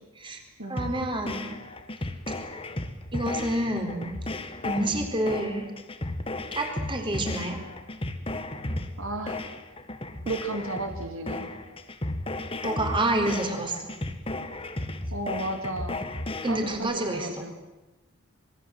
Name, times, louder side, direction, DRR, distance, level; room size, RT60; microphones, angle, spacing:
voice 1, 0.7-1.5 3.1-4.1 4.6-5.7 6.5-7.6 12.6-13.9 16.4-17.4, right 1 dB, 25° right, 4 dB, 4.1 m, -28 dB
sound 1, 0.8-16.8, left 2 dB, 25° left, 1.7 m, -34 dB
voice 2, 9.0-9.4 10.2-11.5 13.4-13.5 15.1-16.0 16.5-17.5, right 2 dB, 80° right, 5 dB, 2.6 m, -34 dB
26.0 x 22.0 x 7.9 m, 1.1 s
head